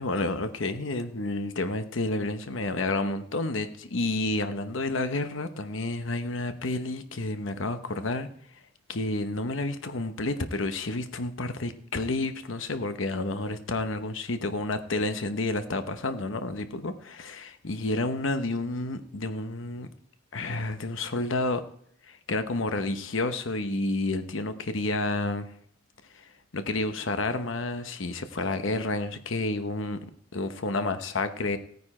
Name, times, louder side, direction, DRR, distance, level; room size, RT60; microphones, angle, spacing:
voice 1, 0.0-8.3 8.9-19.9 20.3-21.6 22.1-25.5 26.1-26.3 26.5-30.0 30.3-31.6, left 2 dB, 65° left, 9 dB, 1.0 m, -30 dB
16.0 x 9.5 x 4.3 m, 0.64 s
head